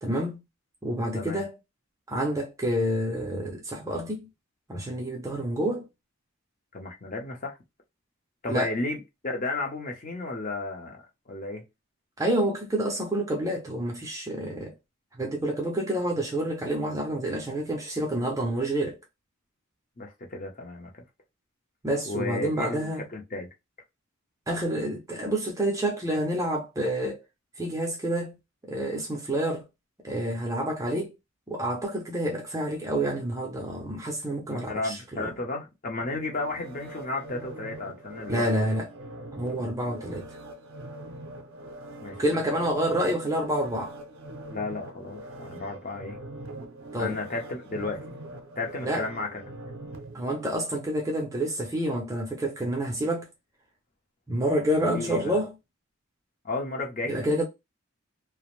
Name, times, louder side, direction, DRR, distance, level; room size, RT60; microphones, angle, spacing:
voice 1, 0.0-0.4 0.8-1.6 2.1-4.3 4.7-5.9 8.5-8.7 12.2-14.7 15.2-19.0 21.8-23.0 24.5-27.2 27.6-28.4 28.6-29.6 30.0-31.1 31.5-35.3 38.3-38.9 39.3-40.3 42.2-44.0 46.9-47.2 48.8-49.1 50.1-53.3 54.3-55.5 57.1-57.4, right 1 dB, 15° right, 0.4 m, -28 dB
voice 2, 6.7-7.6 8.4-11.0 11.3-11.6 20.0-21.0 22.1-23.5 34.5-38.7 42.0-42.2 44.5-46.2 47.0-48.0 48.6-49.3 54.9-55.4 56.4-57.3, left 3 dB, 35° left, 0.6 m, -33 dB
sound 1, 36.0-51.1 51.5-51.6, right 1 dB, 65° right, 0.5 m, -42 dB
2.5 x 2.0 x 3.0 m
head